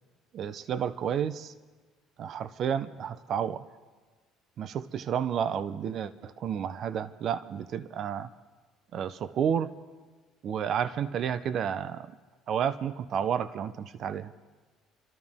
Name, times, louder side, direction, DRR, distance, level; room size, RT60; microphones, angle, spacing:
voice 1, 0.3-1.5 2.2-3.6 4.6-8.3 8.9-9.7 10.4-12.1 12.5-14.3, right 8 dB, 55° right, 14 dB, 0.6 m, -31 dB
28.0 x 13.0 x 3.6 m, 1.3 s
supercardioid pair, 100°, 0 cm